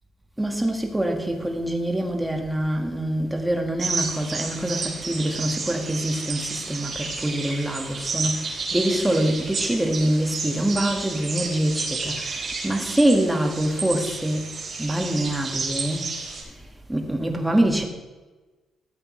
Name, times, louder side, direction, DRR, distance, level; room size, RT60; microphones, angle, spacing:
voice 1, 0.4-14.5 14.8-16.0 16.9-17.8, right 1 dB, 10° right, 3 dB, 1.7 m, -25 dB
sound 1, 3.8-16.4, right 4 dB, 45° right, 3.7 m, -31 dB
15.0 x 8.2 x 3.2 m, 1.2 s
cardioid pair, 90°, 0 cm